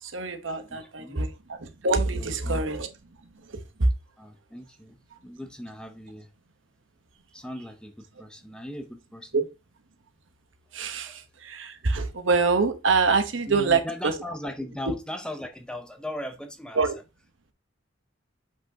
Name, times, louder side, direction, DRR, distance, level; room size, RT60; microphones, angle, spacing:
voice 1, 0.0-2.9 3.3-3.9 9.3-9.4 10.7-14.1 16.8-16.9, right 4 dB, 70° right, 1.0 m, -25 dB
voice 2, 0.7-1.2 2.2-2.6 4.2-6.3 7.3-9.5 11.0-11.2 13.5-16.8, left 1 dB, 5° left, 0.6 m, -38 dB
7.7 x 5.9 x 2.8 m
head